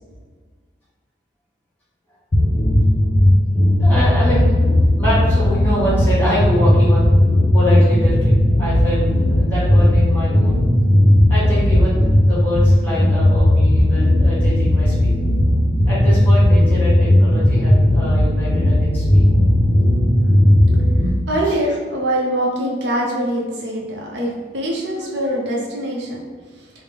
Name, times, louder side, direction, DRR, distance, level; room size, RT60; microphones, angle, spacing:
sound 1, 2.3-21.1, left 1 dB, 30° left, 0.4 m, -15 dB
voice 1, 3.8-4.5 5.0-7.1 7.5-9.1 9.4-10.6 11.3-15.1 15.9-19.2 21.4-21.5, left 1 dB, 10° left, -9 dB, 1.3 m, -25 dB
voice 2, 21.3-26.2, right 1 dB, 70° right, -2 dB, 0.7 m, -23 dB
3.3 x 2.1 x 3.4 m, 1.5 s
head